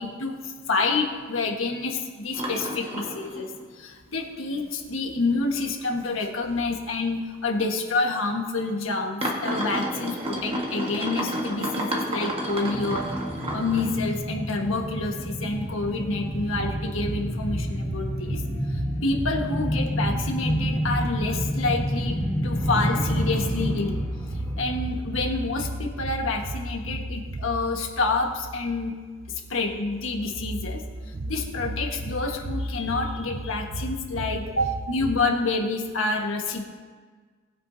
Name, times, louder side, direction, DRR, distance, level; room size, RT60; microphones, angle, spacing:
voice 1, 0.0-3.5 3.8-13.2 13.5-18.4 18.7-22.2 22.4-24.0 24.6-29.0 29.5-30.8 31.3-36.6, left 3 dB, 80° left, 2 dB, 1.5 m, -28 dB
sound 1, 2.3-3.8 4.2-4.3 5.0-5.1 5.6-5.7 6.1-6.2 7.1-7.2 8.0-8.1 9.2-14.0 14.5-15.2 15.6-15.7, equal, 30° right, 1.5 m, -31 dB
sound 2, 12.6-25.8 26.1-26.2, equal, 15° left, 3.3 m, -29 dB
sound 3, 16.3-35.2, right 1 dB, 55° right, 0.6 m, -34 dB
19.5 x 9.2 x 2.8 m, 1.5 s
head